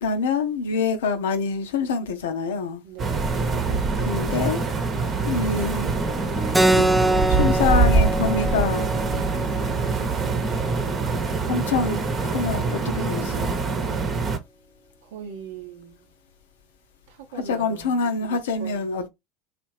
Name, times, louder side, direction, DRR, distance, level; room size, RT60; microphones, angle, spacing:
voice 1, 0.0-2.8 4.0-4.6 5.2-5.9 6.8-6.9 7.3-8.9 11.5-13.6 17.4-19.1, left 4 dB, 75° left, 0.6 m, -25 dB
voice 2, 2.8-3.3 15.0-16.1 17.1-19.1, right 7 dB, 70° right, 0.7 m, -41 dB
sound 1, 3.0-14.4, right 4 dB, 35° right, 0.9 m, -24 dB
Bass guitar, 6.3-13.5, right 2 dB, 25° left, 0.9 m, -44 dB
Keyboard (musical), 6.5-11.6, right 1 dB, 5° right, 0.5 m, -25 dB
3.3 x 2.4 x 3.1 m
figure-of-eight pair, 70°, 0 cm